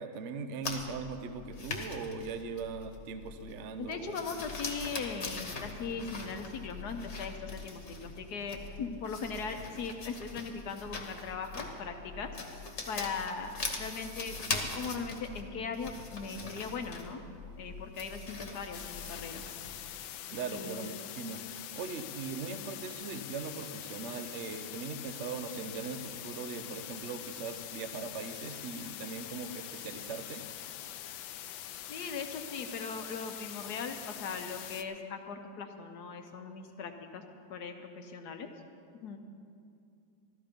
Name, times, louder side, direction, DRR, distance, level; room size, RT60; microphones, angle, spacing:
voice 1, 0.0-4.2 20.3-21.4 21.7-30.4, right 4 dB, 60° right, 9 dB, 0.7 m, -40 dB
sound 1, 0.6-19.8, left 3 dB, 40° left, 1.5 m, -42 dB
voice 2, 3.8-12.3 12.9-17.2 17.6-19.4 20.5-20.9 21.2-21.3 31.9-37.2 37.5-38.5 38.9-39.2, left 5 dB, 60° left, 6 dB, 1.3 m, -39 dB
sound 2, 18.7-34.8, left 11 dB, 80° left, 1.4 m, -44 dB
14.0 x 13.5 x 5.2 m, 2.5 s
omnidirectional pair, 2.1 m